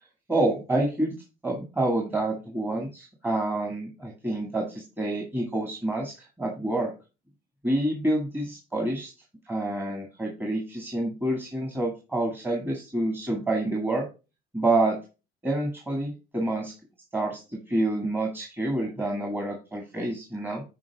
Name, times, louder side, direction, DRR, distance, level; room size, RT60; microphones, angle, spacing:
voice 1, 0.3-1.1 1.4-6.9 7.6-9.1 9.5-14.1 14.5-15.0 15.4-16.7 17.1-20.6, right 2 dB, 15° right, 0 dB, 2.1 m, -28 dB
11.0 x 4.8 x 3.5 m, 0.30 s
cardioid pair, 110°, 17 cm